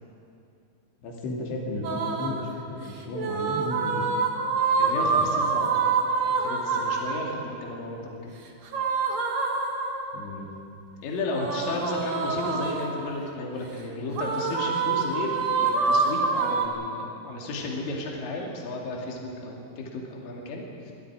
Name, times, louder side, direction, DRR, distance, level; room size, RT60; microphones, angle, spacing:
voice 1, 1.0-4.1 10.1-10.5, left 2 dB, 80° left, -1 dB, 5.1 m, -34 dB
sound 1, 1.8-2.5 3.1-7.3 8.7-10.2 11.3-13.0 14.1-16.7, right 4 dB, 50° right, 2.3 m, -26 dB
voice 2, 4.8-5.9 6.2-8.4 11.0-20.9, left 2 dB, 50° left, -1 dB, 4.0 m, -33 dB
28.0 x 24.0 x 5.0 m, 2.5 s
omnidirectional pair, 5.3 m